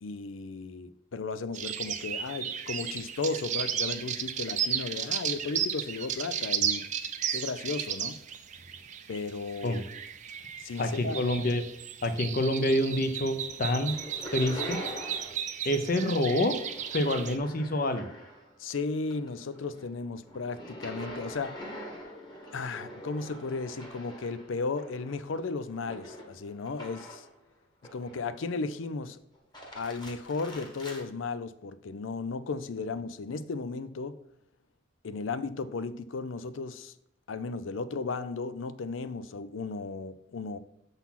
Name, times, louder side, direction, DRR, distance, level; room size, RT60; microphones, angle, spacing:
voice 1, 0.0-6.8 7.3-8.2 9.1-9.8 10.6-11.2 18.6-21.6 22.5-27.3 27.9-29.2 29.7-34.2 35.0-36.9 37.3-40.6, left 4 dB, 85° left, 0.5 m, -35 dB
sound 1, 1.5-17.4, right 8 dB, 40° right, 0.5 m, -34 dB
voice 2, 10.8-11.6 12.0-13.9 14.3-14.8 15.6-16.6 16.9-18.1, left 1 dB, 45° left, 0.7 m, -27 dB
sound 2, 12.6-13.2 13.5-15.5 15.8-18.6 19.0-27.3 27.8-28.5 29.3-31.0, equal, 25° left, 1.3 m, -45 dB
7.1 x 4.0 x 5.7 m
head